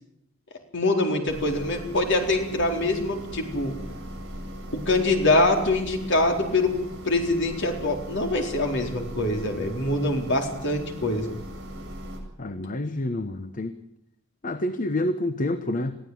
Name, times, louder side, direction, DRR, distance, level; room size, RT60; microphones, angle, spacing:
voice 1, 0.7-3.8 4.7-6.7 7.0-11.3, left 2 dB, 60° left, 3 dB, 4.2 m, -24 dB
sound 1, 1.3-12.2, equal, 60° right, 7.5 m, -39 dB
voice 2, 12.4-13.7 14.4-15.9, left 1 dB, 40° left, 10 dB, 1.1 m, -28 dB
22.0 x 15.0 x 9.5 m, 0.80 s
head